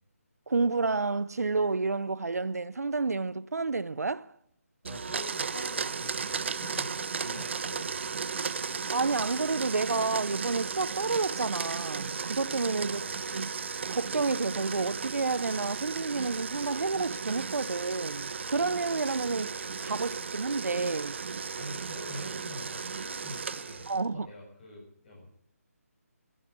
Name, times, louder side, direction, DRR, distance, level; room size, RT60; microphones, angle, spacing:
voice 1, 0.5-4.3 8.9-13.0 13.3-13.5 13.9-21.2 23.9-24.3, right 4 dB, 80° right, 0.7 m, -30 dB
voice 2, 4.8-6.9 7.2-8.2 12.9-13.1 21.6-25.3, left 1 dB, 40° left, 6.4 m, -45 dB
Domestic sounds home sounds, 4.8-24.1, right 5 dB, 50° right, 0.9 m, -35 dB
14.0 x 10.5 x 9.5 m
figure-of-eight pair, 160°, 8 cm